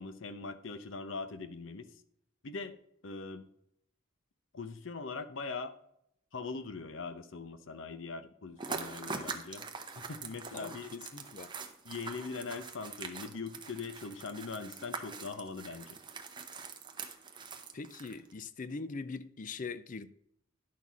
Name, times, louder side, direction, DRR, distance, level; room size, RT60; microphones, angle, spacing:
voice 1, 0.0-1.9 2.4-2.8 3.0-3.5 4.5-5.7 6.3-9.7 10.0-10.9 11.8-16.0, left 4 dB, 70° left, 0.8 m, -41 dB
sound 1, 8.6-18.3, right 4 dB, 25° right, 0.8 m, -43 dB
voice 2, 10.5-11.5 17.7-20.1, left 4 dB, 40° left, 0.5 m, -42 dB
10.5 x 6.2 x 4.1 m
head